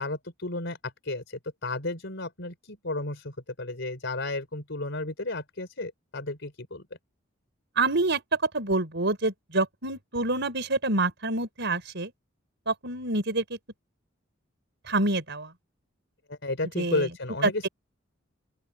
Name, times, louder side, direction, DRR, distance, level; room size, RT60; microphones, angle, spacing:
voice 1, 0.0-6.8 16.3-17.7, left 2 dB, 65° left, 4.7 m, -33 dB
voice 2, 7.8-8.2 8.5-12.1 12.7-13.4 14.9-15.5 16.8-17.0, right 2 dB, 65° right, 6.2 m, -27 dB
open air
head